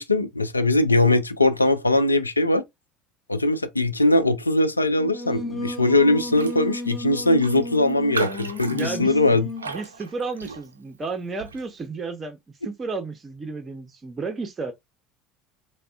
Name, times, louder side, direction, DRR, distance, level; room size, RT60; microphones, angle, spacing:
voice 1, 0.0-2.6 3.3-9.5, left 2 dB, 90° left, 0.3 m, -21 dB
Singing, 4.9-9.8, left 2 dB, 30° left, 0.7 m, -33 dB
Raindrop, 6.3-6.6 6.9-7.0 7.4-10.9 11.4-11.7, right 5 dB, 85° right, 0.3 m, -34 dB
voice 2, 8.7-9.2 9.7-14.7, right 4 dB, 25° right, 0.5 m, -32 dB
3.5 x 2.1 x 2.3 m
figure-of-eight pair, 65°, 0 cm